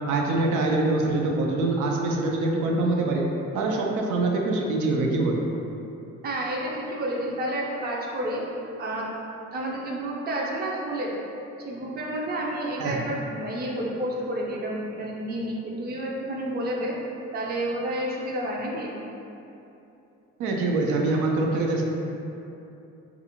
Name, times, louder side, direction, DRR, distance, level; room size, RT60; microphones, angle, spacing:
voice 1, 0.1-3.3 3.5-5.4 12.8-13.0 20.4-21.8, right 2 dB, 85° right, 0 dB, 0.5 m, -24 dB
voice 2, 6.2-8.4 8.8-9.1 9.5-11.2 11.6-17.0 17.3-19.0, right 1 dB, 30° right, -2 dB, 0.4 m, -30 dB
2.4 x 2.4 x 2.9 m, 2.8 s
cardioid pair, 90°, 30 cm